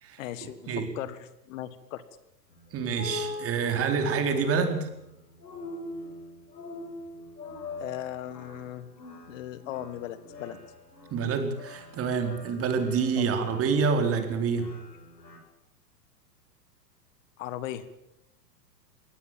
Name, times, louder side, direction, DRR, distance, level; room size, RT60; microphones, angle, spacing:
voice 1, 0.2-2.0 7.8-8.9 9.3-10.6 13.2-13.3 17.4-17.8, left 12 dB, 50° left, 14 dB, 1.7 m, -38 dB
sound 1, 2.5-15.4, left 3 dB, 75° left, 7.3 m, -43 dB
voice 2, 2.7-4.9 11.1-14.7, right 5 dB, 25° right, 5 dB, 4.2 m, -27 dB
23.5 x 18.0 x 7.4 m, 0.84 s
hypercardioid pair, 115°, 50 cm